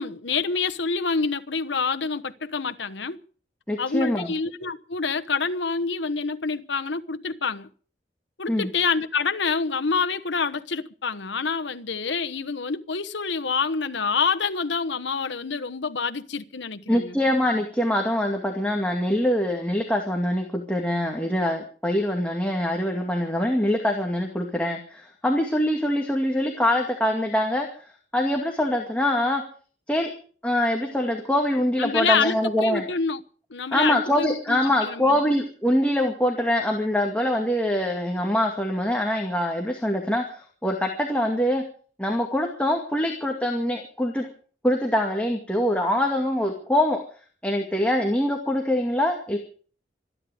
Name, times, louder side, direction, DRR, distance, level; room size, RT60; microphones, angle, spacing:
voice 1, 0.0-3.2 3.8-7.7 8.4-17.2 31.8-33.2 33.5-35.2, left 5 dB, 85° left, 1.2 m, -27 dB
voice 2, 3.7-4.3 8.5-8.7 16.9-27.7 28.1-29.4 29.9-30.1 30.4-32.8 33.7-41.6 42.0-44.3 44.6-47.0 47.4-49.4, left 1 dB, 5° left, 2.2 m, -24 dB
26.0 x 10.5 x 5.0 m
head